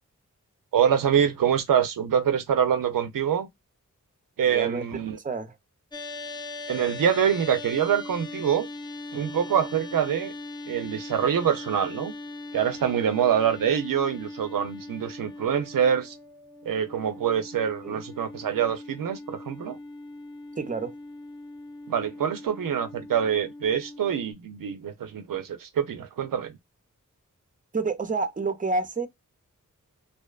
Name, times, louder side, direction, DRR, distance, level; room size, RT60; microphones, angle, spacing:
voice 1, 0.7-3.5 4.4-5.2 6.7-8.7 9.1-10.3 10.7-12.1 12.5-16.1 16.7-19.8 21.9-26.5, right 8 dB, 90° right, 0.5 m, -25 dB
voice 2, 4.4-4.9 5.2-5.6 17.8-18.0 20.6-20.9 27.7-29.1, right 3 dB, 25° right, 0.5 m, -29 dB
sound 1, 5.9-24.3, left 2 dB, 15° left, 0.7 m, -40 dB
2.6 x 2.1 x 2.2 m
wide cardioid pair, 55°, 32 cm